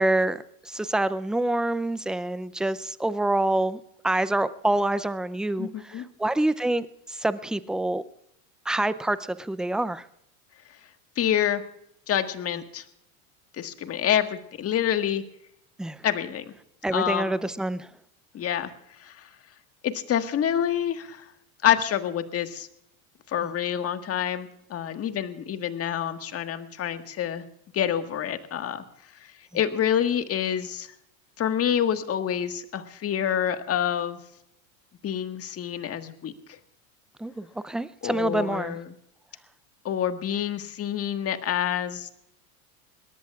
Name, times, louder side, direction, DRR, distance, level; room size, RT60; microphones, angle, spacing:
voice 1, 0.0-8.0 8.7-10.1 15.8-16.0 16.8-17.9 23.4-23.5 37.2-38.8, right 1 dB, ahead, 15 dB, 0.5 m, -27 dB
voice 2, 5.6-6.0 11.2-11.6 12.1-12.8 13.5-15.2 16.0-16.5 16.9-17.4 18.3-18.7 19.0-19.3 19.8-21.3 21.6-22.7 23.3-27.4 27.7-28.8 29.2-30.9 31.4-34.2 35.0-36.6 38.0-38.9 39.8-42.1, left 9 dB, 35° left, 8 dB, 1.6 m, -27 dB
22.0 x 18.0 x 2.4 m, 0.75 s
supercardioid pair, 110°, 43 cm